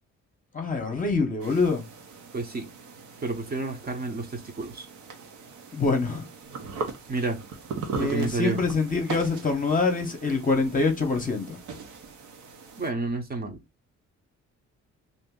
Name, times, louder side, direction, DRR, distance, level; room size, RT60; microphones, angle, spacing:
voice 1, 0.5-1.8 5.7-6.3 7.9-11.6, left 3 dB, 25° left, 0.8 m, -25 dB
sound 1, 1.4-12.9, right 4 dB, 75° right, 0.8 m, -40 dB
voice 2, 2.3-2.7 3.2-4.8 7.1-7.4 8.0-8.6 12.8-13.6, right 3 dB, 30° right, 0.7 m, -30 dB
2.6 x 2.5 x 3.6 m
cardioid pair, 90°, 30 cm